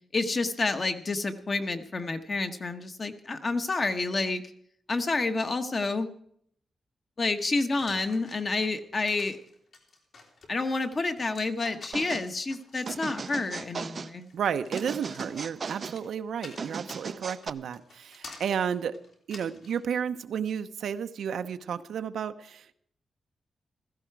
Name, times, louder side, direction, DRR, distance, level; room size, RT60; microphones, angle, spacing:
voice 1, 0.1-4.4 4.9-6.1 7.2-9.4 10.5-14.3, left 3 dB, 30° left, 8 dB, 1.1 m, -29 dB
sound 1, 7.8-19.8, left 3 dB, 60° left, 3.4 m, -50 dB
sound 2, 11.9-12.3 12.9-14.1 14.7-16.0 16.6-17.5, right 5 dB, 40° right, 0.5 m, -37 dB
voice 2, 14.3-19.0 19.3-22.7, right 7 dB, 90° right, 9 dB, 0.8 m, -32 dB
16.0 x 14.5 x 4.7 m, 0.67 s
wide cardioid pair, 175°, 0 cm